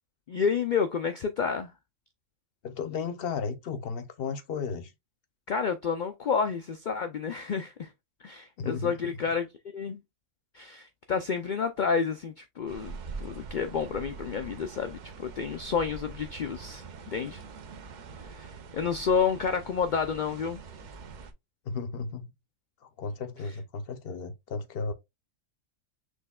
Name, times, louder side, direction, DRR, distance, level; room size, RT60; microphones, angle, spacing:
voice 1, 0.3-1.7 5.5-7.9 8.2-9.5 9.7-10.0 10.5-17.4 18.3-20.6, left 6 dB, 85° left, 0.4 m, -30 dB
voice 2, 2.6-4.9 8.6-9.2 18.8-18.9 21.6-22.3 22.8-24.9, left 5 dB, 55° left, 0.7 m, -34 dB
sound 1, 12.7-21.3, right 4 dB, 60° right, 0.5 m, -44 dB
6.2 x 3.2 x 2.3 m
omnidirectional pair, 1.4 m